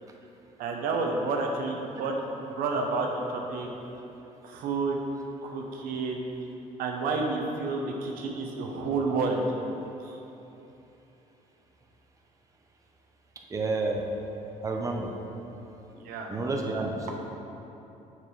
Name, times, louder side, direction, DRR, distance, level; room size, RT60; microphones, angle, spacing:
voice 1, 0.6-2.1 2.5-3.7 4.4-5.0 5.4-6.3 6.8-9.4 10.0-10.2 15.9-16.3, right 3 dB, 85° right, 1 dB, 1.0 m, -30 dB
voice 2, 13.5-14.1 14.6-15.1 16.3-17.1, right 3 dB, 20° right, 1 dB, 0.7 m, -29 dB
7.1 x 6.0 x 4.7 m, 3.0 s
cardioid pair, 115°, 15 cm